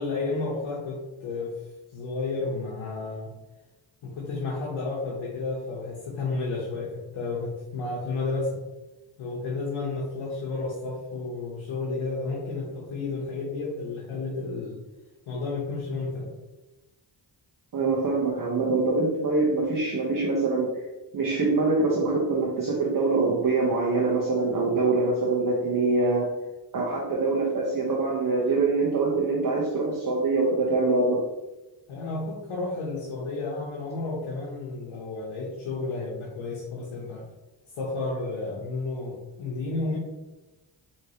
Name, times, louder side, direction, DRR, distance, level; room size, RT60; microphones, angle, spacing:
voice 1, 0.0-1.5 1.9-3.3 4.0-8.6 9.2-14.8 15.3-16.3 31.9-37.3 37.7-40.0, left 3 dB, 85° left, -4 dB, 1.0 m, -32 dB
voice 2, 17.7-20.8 21.1-26.3 26.7-31.2, right 3 dB, 45° right, -4 dB, 1.0 m, -24 dB
4.6 x 3.1 x 2.9 m, 1.1 s
cardioid pair, 55°, 47 cm